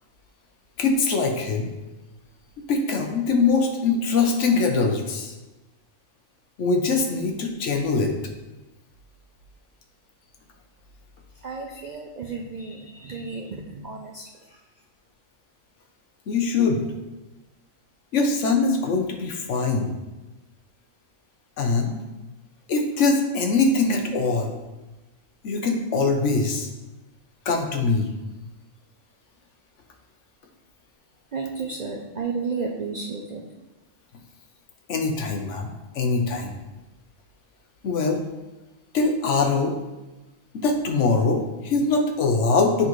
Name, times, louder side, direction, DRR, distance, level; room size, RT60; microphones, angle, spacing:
voice 1, 0.8-1.7 2.7-5.3 6.6-8.1 11.7-11.9 16.3-16.8 18.1-19.9 21.6-22.0 22.7-24.5 25.4-26.7 27.5-28.1 34.9-36.5 37.8-38.2 38.9-39.8 40.5-42.9, left 4 dB, 70° left, 3 dB, 1.1 m, -22 dB
voice 2, 11.4-14.3 31.3-33.4, right 4 dB, 60° right, 0 dB, 0.4 m, -32 dB
8.4 x 3.9 x 3.1 m, 1.1 s
omnidirectional pair, 1.3 m